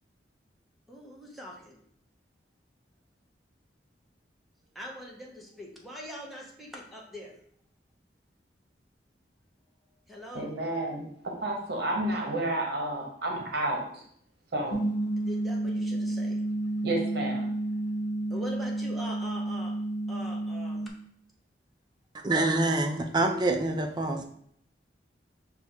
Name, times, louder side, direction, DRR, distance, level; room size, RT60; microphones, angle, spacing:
voice 1, 0.9-1.7 4.7-7.3 10.1-10.5 14.6-14.7 15.2-16.4 18.3-19.7 20.1-20.8, equal, ahead, 0.8 m, -42 dB
voice 2, 10.3-14.0 14.5-14.8 16.8-17.5, right 1 dB, 65° right, 0.9 m, -31 dB
sound 1, 14.7-20.9, right 1 dB, 80° left, 0.6 m, -31 dB
voice 3, 22.1-24.2, right 2 dB, 25° right, 0.5 m, -26 dB
5.2 x 2.3 x 4.4 m
head